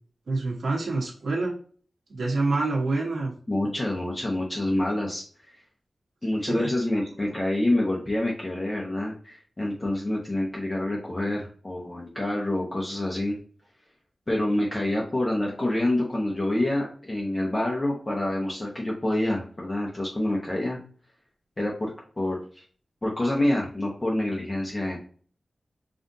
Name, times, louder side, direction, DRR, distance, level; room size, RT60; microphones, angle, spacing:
voice 1, 0.3-1.5 2.1-3.3 6.5-6.7, right 3 dB, 90° right, -4 dB, 1.2 m, -26 dB
voice 2, 3.5-5.6 6.2-13.4 14.3-20.8 21.6-22.6 23.0-25.0, left 1 dB, 25° left, -3 dB, 0.9 m, -27 dB
5.6 x 2.5 x 2.7 m, 0.43 s
wide cardioid pair, 115°, 0 cm